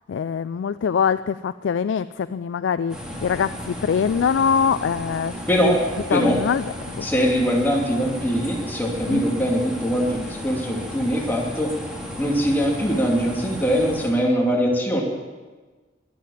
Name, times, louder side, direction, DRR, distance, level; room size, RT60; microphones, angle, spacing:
voice 1, 0.1-5.8 6.1-6.7 6.9-7.1 9.1-9.2, left 7 dB, 85° left, 13 dB, 0.3 m, -23 dB
sound 1, 2.9-14.1, equal, 5° right, 2.5 m, -34 dB
voice 2, 5.5-5.8 6.1-6.4 7.0-11.7 12.2-15.0, equal, 10° left, -2 dB, 2.7 m, -22 dB
21.5 x 7.7 x 7.2 m, 1.3 s
head